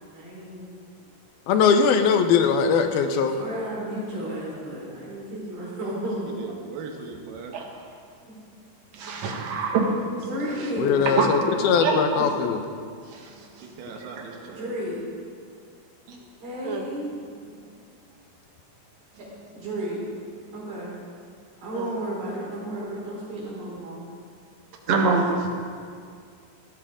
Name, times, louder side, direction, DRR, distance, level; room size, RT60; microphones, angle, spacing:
voice 1, 0.1-0.7 3.1-6.5 8.3-8.4 10.2-11.0 14.5-15.0 16.4-17.1 19.2-19.3 19.5-20.0 20.5-21.0 21.6-24.1, right 1 dB, 70° right, -6 dB, 6.1 m, -33 dB
voice 2, 1.5-3.3 10.8-12.6, left 6 dB, 85° left, 7 dB, 2.8 m, -20 dB
voice 3, 6.4-7.5 13.6-14.7, right 4 dB, 90° right, 2 dB, 3.2 m, -39 dB
voice 4, 8.9-10.2 11.2-11.3 11.8-12.4 13.0-13.7 14.2-14.5 16.1-16.2 16.6-16.9 21.7-21.9 24.9-25.5, right 3 dB, 55° right, -1 dB, 2.6 m, -26 dB
17.5 x 13.5 x 3.7 m, 2.2 s
omnidirectional pair, 4.2 m